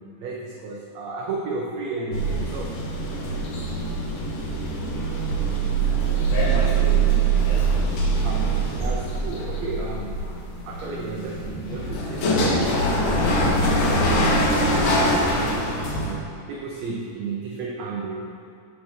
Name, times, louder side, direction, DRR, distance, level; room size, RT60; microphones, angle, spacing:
voice 1, 0.0-2.8 8.2-10.3 10.7-13.8 14.3-18.4, right 3 dB, 85° right, -1 dB, 1.5 m, -33 dB
sound 1, 2.1-16.1, right 2 dB, 80° left, 2.9 m, -23 dB
voice 2, 6.0-8.3 14.1-14.2 14.5-14.8, left 3 dB, 60° left, -5 dB, 2.6 m, -33 dB
12.5 x 4.6 x 4.4 m, 2.4 s
omnidirectional pair, 3.9 m